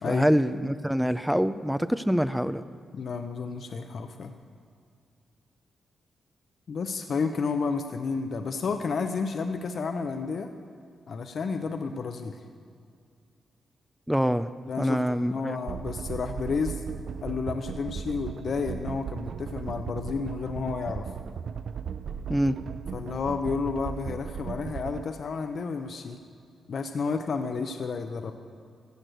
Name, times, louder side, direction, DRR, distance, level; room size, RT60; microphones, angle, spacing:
voice 1, 0.0-2.6 14.1-14.5 14.8-15.6 22.3-22.6, equal, ahead, 13 dB, 0.4 m, -25 dB
voice 2, 2.9-4.3 6.7-10.5 11.1-12.4 14.7-16.8 17.2-21.1 22.9-26.2 26.7-28.3, left 5 dB, 60° left, 7 dB, 0.7 m, -31 dB
sound 1, 15.7-25.0, right 7 dB, 70° right, 0.4 m, -36 dB
15.0 x 6.6 x 7.9 m, 2.3 s
cardioid pair, 80°, 0 cm